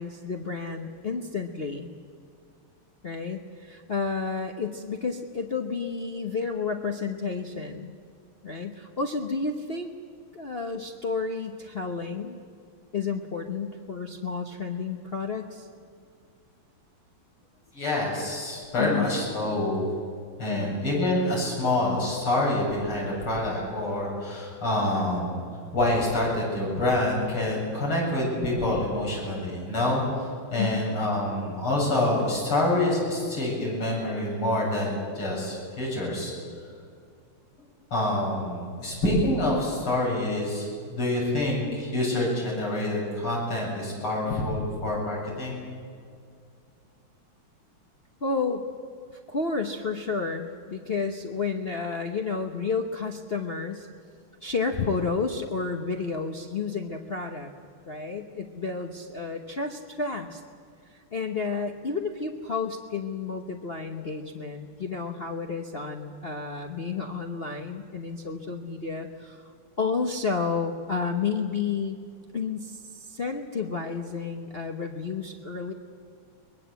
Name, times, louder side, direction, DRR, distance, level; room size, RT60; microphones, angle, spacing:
voice 1, 0.0-1.9 3.0-8.0 8.4-9.9 10.3-12.4 12.9-15.7 18.8-19.1 20.5-20.7 30.6-30.8 48.2-48.7 49.3-53.9 54.4-57.5 57.9-60.4 60.9-72.0 72.3-75.7, left 4 dB, 40° left, 2 dB, 0.9 m, -31 dB
voice 2, 17.7-19.8 20.4-25.4 25.7-36.3 37.9-45.6, left 1 dB, 75° left, -4 dB, 8.5 m, -27 dB
23.0 x 20.5 x 8.2 m, 2.3 s
omnidirectional pair, 2.4 m